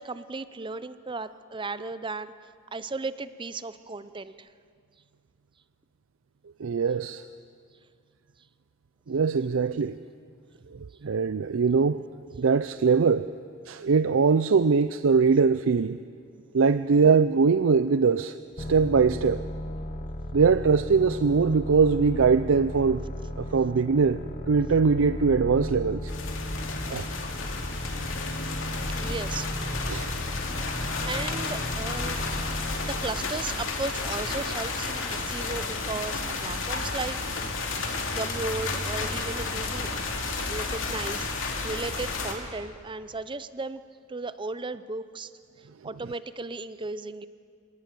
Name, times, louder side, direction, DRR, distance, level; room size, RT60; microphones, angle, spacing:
voice 1, 0.0-2.3 2.7-4.5 29.0-29.5 31.1-32.2 32.8-39.9 40.4-41.3 41.6-43.8 44.1-45.3 45.8-47.3, right 3 dB, 25° right, 14 dB, 0.7 m, -35 dB
voice 2, 6.6-7.2 9.1-9.9 11.0-12.0 12.4-13.3 13.7-16.0 16.5-19.4 20.3-23.0 23.4-26.1 26.9-27.1 29.9-30.1, right 5 dB, 85° right, 13 dB, 0.5 m, -22 dB
sound 1, 18.6-33.3, left 1 dB, 40° left, 0.9 m, -35 dB
sound 2, 26.1-42.3, left 3 dB, 80° left, 2.7 m, -32 dB
26.0 x 18.5 x 7.6 m, 2.2 s
head